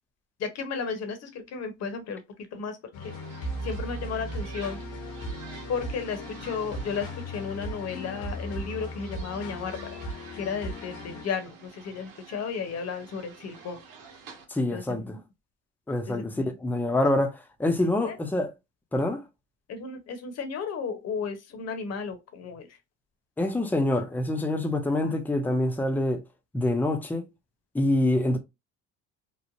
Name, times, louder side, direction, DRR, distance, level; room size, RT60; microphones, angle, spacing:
voice 1, 0.4-2.2 2.5-4.8 5.7-10.0 10.3-13.8 14.7-15.1 16.1-16.5 18.0-18.1 19.7-22.7 25.0-25.1, left 5 dB, 50° left, 0.9 m, -34 dB
sound 1, 2.9-11.2, equal, 75° left, 1.1 m, -37 dB
sound 2, 3.0-14.5, right 5 dB, 80° right, 1.0 m, -49 dB
voice 2, 14.5-15.2 15.9-18.5 18.9-19.2 23.4-26.2 26.5-27.3 27.7-28.4, left 1 dB, 5° left, 0.6 m, -26 dB
3.1 x 2.1 x 2.5 m
supercardioid pair, 80°, 33 cm